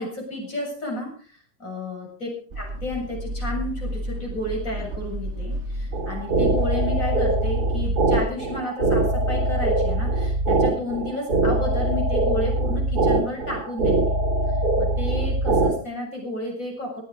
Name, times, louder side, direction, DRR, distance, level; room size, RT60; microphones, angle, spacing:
voice 1, 0.0-2.3 2.6-14.2 14.8-17.0, left 1 dB, 60° left, 0 dB, 8.0 m, -32 dB
sound 1, 2.5-8.3, equal, 50° right, 1.6 m, -32 dB
sound 2, 5.9-15.7, right 2 dB, 90° right, 3.4 m, -22 dB
18.5 x 13.0 x 4.9 m, 0.43 s
omnidirectional pair, 1.6 m